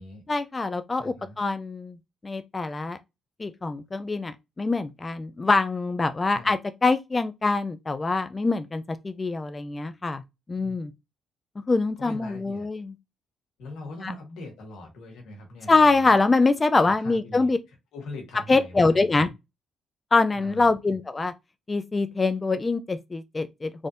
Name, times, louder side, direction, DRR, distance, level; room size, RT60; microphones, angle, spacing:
voice 1, 0.3-2.0 2.2-3.0 3.4-10.2 10.5-10.9 11.7-12.9 14.0-14.1 15.7-17.6 18.5-19.3 20.1-21.3 21.7-23.7, left 3 dB, 25° left, 0.3 m, -24 dB
voice 2, 1.0-1.4 6.3-6.5 10.5-10.8 12.0-12.7 13.6-16.1 16.8-17.5 17.9-19.3 20.3-20.7, left 2 dB, 85° left, 1.3 m, -42 dB
3.4 x 2.6 x 2.5 m
cardioid pair, 90°, 0 cm